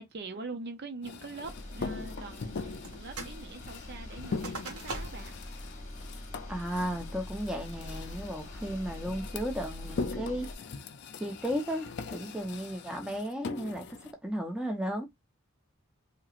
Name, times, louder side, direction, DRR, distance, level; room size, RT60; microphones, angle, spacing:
voice 1, 0.0-5.3, right 3 dB, 50° right, 0.5 m, -43 dB
sound 1, 1.0-14.1, left 4 dB, 50° left, 0.4 m, -41 dB
sound 2, 1.4-10.6, left 1 dB, 35° left, 1.1 m, -44 dB
sound 3, 2.8-3.4 3.7-5.4 5.8-5.9 6.4-6.8 7.3-7.8, right 2 dB, 90° right, 1.3 m, -42 dB
voice 2, 6.5-10.5 11.2-15.1, equal, 5° right, 0.7 m, -34 dB
3.0 x 2.9 x 2.4 m
head